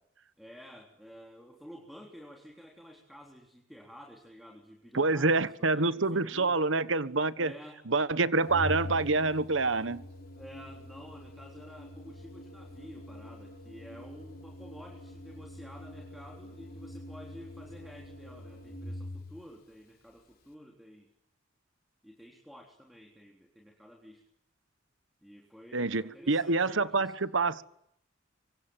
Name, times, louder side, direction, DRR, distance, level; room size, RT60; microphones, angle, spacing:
voice 1, 0.4-6.6 7.3-7.8 10.3-21.1 22.0-24.2 25.2-27.1, equal, ahead, 3.6 m, -51 dB
voice 2, 4.9-7.5 7.9-10.0 25.7-27.6, right 3 dB, 80° right, 1.3 m, -27 dB
Organ, 8.5-19.5, left 1 dB, 50° left, 4.4 m, -44 dB
25.5 x 25.0 x 9.1 m
head